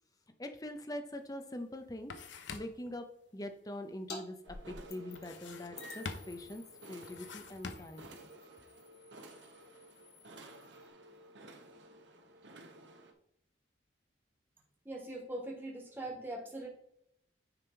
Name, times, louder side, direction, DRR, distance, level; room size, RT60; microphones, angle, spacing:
voice 1, 0.4-2.1 2.5-3.0 3.3-8.0, left 1 dB, 20° left, 6 dB, 0.7 m, -43 dB
sound 1, 1.2-1.3 1.7-2.9 5.1-5.8 6.1-6.5 7.0-8.1, left 4 dB, 85° left, 0.7 m, -46 dB
sound 2, 4.1-4.2 4.5-5.4 5.8-10.9, left 3 dB, 55° left, 1.1 m, -52 dB
sound 3, 4.4-13.1, right 2 dB, 75° right, 1.1 m, -54 dB
voice 2, 14.8-16.7, right 1 dB, 10° right, -2 dB, 1.7 m, -41 dB
9.7 x 3.5 x 4.5 m, 0.72 s
head